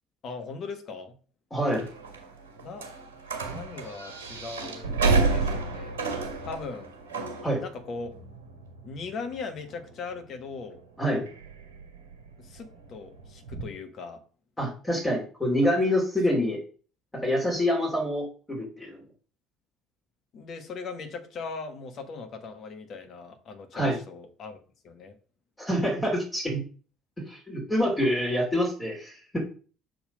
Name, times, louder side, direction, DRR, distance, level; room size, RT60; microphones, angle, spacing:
voice 1, 0.2-1.2 2.6-2.9 3.5-6.0 6.4-6.9 7.6-8.2 8.8-10.8 12.4-14.2 15.6-15.7 20.3-24.6 24.8-25.1, left 4 dB, 50° left, 6 dB, 1.5 m, -39 dB
voice 2, 1.5-1.9 7.4-7.6 11.0-11.3 14.6-16.6 17.1-19.0 23.7-24.0 25.6-26.6 27.2-29.4, equal, 20° left, -2 dB, 2.8 m, -26 dB
sound 1, 1.7-13.7, right 4 dB, 80° right, 1.6 m, -32 dB
6.8 x 4.0 x 5.3 m, 0.40 s
figure-of-eight pair, 55°, 0 cm